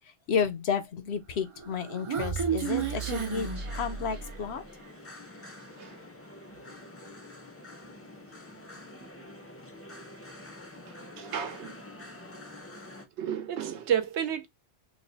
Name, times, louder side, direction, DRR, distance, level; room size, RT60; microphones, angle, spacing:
voice 1, 0.3-3.5 3.7-4.8, left 6 dB, 70° left, 0.9 m, -31 dB
Human voice, 1.5-4.5, right 6 dB, 55° right, 0.3 m, -32 dB
sound 1, 2.5-13.1, left 2 dB, 20° left, 0.4 m, -47 dB
voice 2, 10.9-11.8 13.2-14.5, right 9 dB, 90° right, 0.9 m, -32 dB
3.1 x 2.0 x 3.8 m
omnidirectional pair, 1.1 m